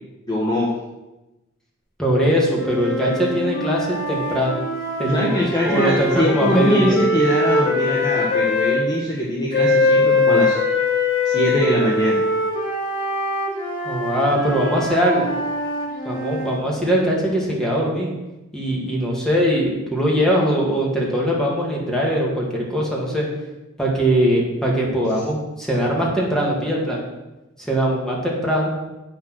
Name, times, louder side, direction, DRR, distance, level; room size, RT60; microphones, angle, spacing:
voice 1, 0.3-0.7 5.0-10.6 11.2-12.2, left 1 dB, 20° left, -5 dB, 1.3 m, -22 dB
voice 2, 2.0-4.6 5.0-7.0 13.8-15.3 16.1-18.1 18.5-23.3 23.8-27.0 27.6-28.8, equal, 5° left, -3 dB, 2.1 m, -21 dB
sound 1, 2.5-8.8 9.5-16.6, left 2 dB, 50° left, 2.4 m, -22 dB
8.2 x 6.2 x 6.4 m, 1.0 s
head